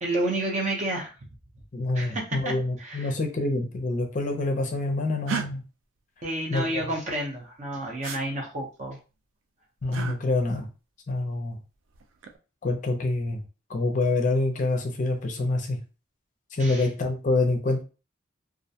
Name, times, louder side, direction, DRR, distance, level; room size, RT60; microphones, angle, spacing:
voice 1, 0.0-1.1 1.9-2.5 2.8-3.1 6.2-9.0 9.9-10.0 16.6-16.9, right 1 dB, 40° right, 0 dB, 0.7 m, -30 dB
voice 2, 1.7-5.6 6.5-6.8 9.8-10.7 11.1-11.6 12.6-13.4 13.7-15.8 16.5-17.8, left 2 dB, 40° left, 3 dB, 0.5 m, -26 dB
sound 1, 5.3-5.5 8.0-8.2 9.9-10.2 11.9-12.4, right 6 dB, 90° right, 0.4 m, -32 dB
2.4 x 2.1 x 2.7 m, 0.33 s
head